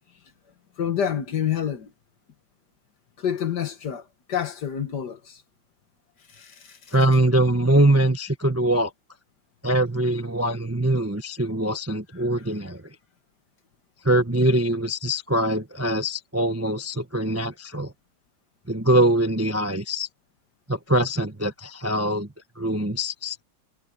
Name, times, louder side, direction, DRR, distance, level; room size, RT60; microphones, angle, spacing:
voice 1, 0.8-1.9 3.2-4.0 4.3-5.2 6.4-6.5, left 9 dB, 55° left, 1.9 m, -27 dB
voice 2, 6.9-8.9 9.6-12.8 14.0-17.9 18.7-20.1 20.7-22.3 22.6-23.4, right 1 dB, 15° right, 0.6 m, -23 dB
omnidirectional pair, 2.3 m